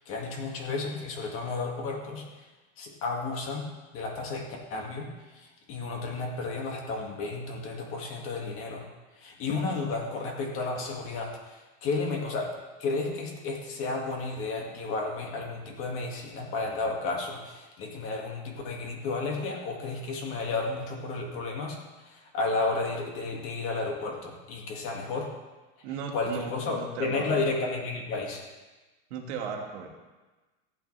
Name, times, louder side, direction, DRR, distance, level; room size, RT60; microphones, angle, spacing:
voice 1, 0.0-2.2 2.8-3.7 3.9-5.1 5.3-8.8 9.2-12.5 12.8-25.3 26.1-28.5, left 3 dB, 40° left, 0 dB, 2.1 m, -32 dB
voice 2, 25.8-27.4 29.1-29.9, right 6 dB, 70° right, 1 dB, 2.0 m, -36 dB
14.5 x 9.0 x 3.3 m, 1.2 s
supercardioid pair, 155°, 35 cm